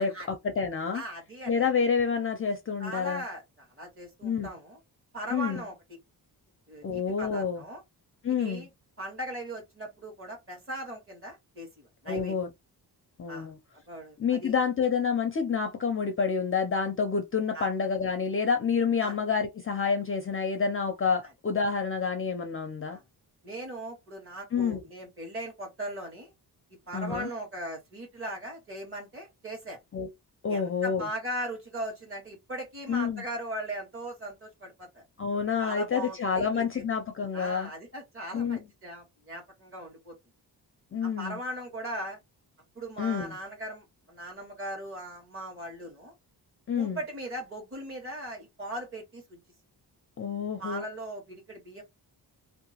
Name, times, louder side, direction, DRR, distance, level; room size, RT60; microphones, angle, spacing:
voice 1, 0.0-1.0 1.5-3.2 4.2-4.5 5.3-5.6 6.8-7.6 8.2-8.7 12.1-12.5 13.2-13.6 14.2-23.0 24.5-24.8 26.9-27.3 29.9-30.1 30.4-31.1 32.9-33.2 35.2-37.7 38.3-38.6 40.9-41.4 43.0-43.4 46.7-47.0 50.2-50.8, left 6 dB, 35° left, 0.4 m, -28 dB
voice 2, 0.9-1.5 2.8-4.8 5.1-5.7 6.7-7.8 8.3-8.7 9.0-12.3 13.3-13.5 13.9-14.5 17.5-17.7 19.0-19.1 21.2-21.3 22.9-23.0 23.4-26.3 26.9-29.8 30.5-35.0 35.6-36.8 37.3-40.1 41.0-42.2 42.7-46.1 46.7-49.4 50.6-51.8, right 1 dB, 30° right, 1.5 m, -39 dB
2.8 x 2.1 x 2.8 m
wide cardioid pair, 165°, 41 cm